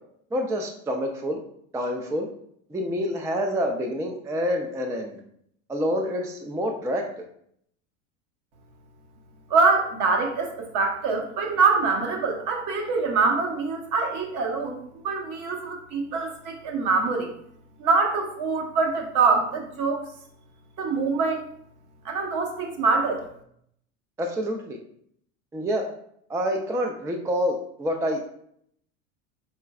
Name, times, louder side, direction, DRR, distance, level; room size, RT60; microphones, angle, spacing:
voice 1, 0.3-1.4 1.7-2.3 2.7-5.2 5.7-7.0 24.2-24.8 25.5-25.9 26.3-28.3, equal, 10° right, 3 dB, 0.3 m, -27 dB
voice 2, 9.5-17.3 17.8-20.0 20.8-21.5 22.0-23.2, right 4 dB, 50° right, 2 dB, 1.1 m, -24 dB
4.5 x 4.2 x 2.3 m, 0.69 s
hypercardioid pair, 85°, 39 cm